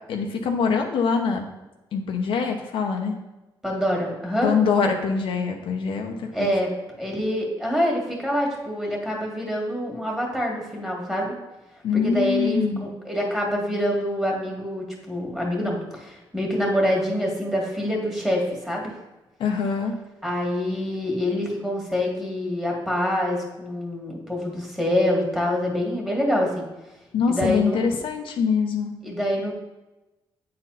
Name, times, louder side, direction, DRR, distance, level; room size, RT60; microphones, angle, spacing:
voice 1, 0.1-1.5 1.9-3.1 4.4-6.5 11.8-12.8 19.4-19.9 27.1-28.9, left 5 dB, 80° left, 3 dB, 0.8 m, -24 dB
voice 2, 3.6-4.5 6.3-6.7 7.0-11.3 11.9-18.9 20.2-26.6 27.3-27.8 29.0-29.5, equal, 5° right, -1 dB, 2.0 m, -26 dB
8.7 x 4.2 x 4.0 m, 1.0 s
cardioid pair, 100°, 9 cm